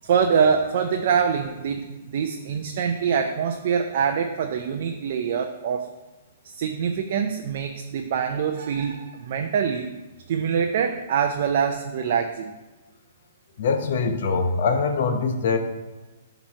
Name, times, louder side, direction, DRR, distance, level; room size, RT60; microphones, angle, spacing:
voice 1, 0.0-5.9 6.4-9.9 10.3-12.5, right 7 dB, 55° right, 5 dB, 0.4 m, -24 dB
voice 2, 13.6-15.6, left 4 dB, 60° left, 7 dB, 0.7 m, -23 dB
8.5 x 3.0 x 4.5 m, 1.2 s
hypercardioid pair, 150°, 0 cm